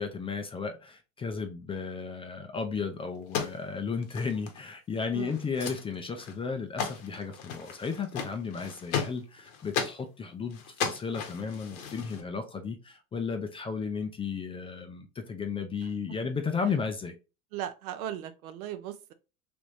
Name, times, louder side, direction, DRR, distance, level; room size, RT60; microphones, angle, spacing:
voice 1, 0.0-17.2, left 5 dB, 15° left, 0.3 m, -34 dB
sound 1, 3.1-4.7 5.0-5.1 5.3-5.8 6.2-6.5 6.8-10.0 10.5-12.2, left 7 dB, 70° left, 1.0 m, -35 dB
voice 2, 5.1-5.5 15.8-15.9 17.5-19.1, right 11 dB, 75° right, 0.6 m, -38 dB
3.3 x 3.0 x 2.5 m
hypercardioid pair, 90°, 43 cm